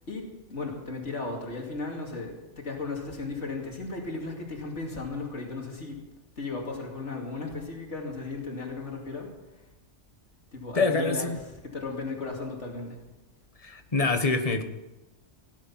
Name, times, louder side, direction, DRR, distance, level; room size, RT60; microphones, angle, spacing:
voice 1, 0.5-6.0 6.4-9.3 10.5-11.3 11.6-13.0, left 3 dB, 90° left, 0 dB, 2.8 m, -35 dB
voice 2, 10.7-11.4 13.6-14.6, left 3 dB, 30° left, 7 dB, 1.3 m, -25 dB
17.0 x 11.0 x 5.9 m, 1.1 s
omnidirectional pair, 1.2 m